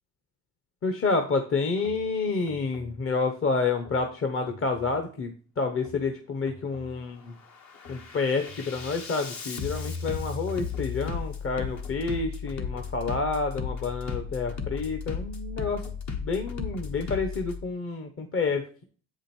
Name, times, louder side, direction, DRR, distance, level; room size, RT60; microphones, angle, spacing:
voice 1, 0.8-7.4 7.9-15.8 16.2-18.8, left 4 dB, 45° left, 5 dB, 1.0 m, -29 dB
Bass drum, 1.8-2.0 2.5-2.9 3.7-4.0 4.5-5.0 5.7-6.0 6.5-7.0 7.4-17.6, left 5 dB, 65° left, 1.4 m, -36 dB
8.0 x 5.1 x 4.3 m, 0.41 s
cardioid pair, 90°, 30 cm